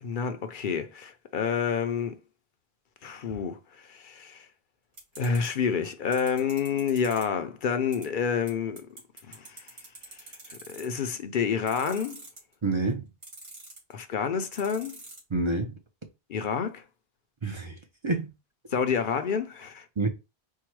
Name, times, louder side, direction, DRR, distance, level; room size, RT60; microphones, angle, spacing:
voice 1, 0.0-2.1 3.0-4.5 5.2-8.9 9.3-9.6 10.5-12.2 13.9-15.0 16.3-16.8 18.7-19.9, left 6 dB, 60° left, 0.7 m, -29 dB
sound 1, 5.0-5.5 6.1-7.2 7.9-8.0 8.5-8.6 8.8-11.1 11.7-12.5 13.2-13.9 14.5-15.2, right 2 dB, 80° right, 2.4 m, -44 dB
voice 2, 12.6-13.1 15.3-15.8 17.4-17.8 18.0-18.3 20.0-20.1, right 3 dB, 35° right, 0.6 m, -27 dB
4.6 x 2.2 x 4.5 m
omnidirectional pair, 1.0 m